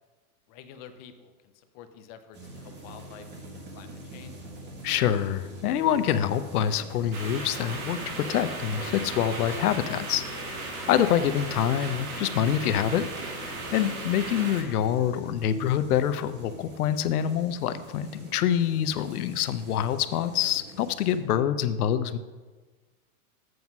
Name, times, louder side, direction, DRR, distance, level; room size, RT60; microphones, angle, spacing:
voice 1, 0.5-4.4, left 8 dB, 30° left, 9 dB, 0.4 m, -49 dB
sound 1, 2.3-21.2, right 1 dB, 25° right, 1.7 m, -45 dB
voice 2, 4.8-22.2, left 10 dB, 80° left, 12 dB, 0.8 m, -26 dB
sound 2, 7.1-14.6, right 3 dB, 75° right, 2.3 m, -36 dB
7.9 x 5.3 x 5.9 m, 1.3 s
supercardioid pair, 145°, 44 cm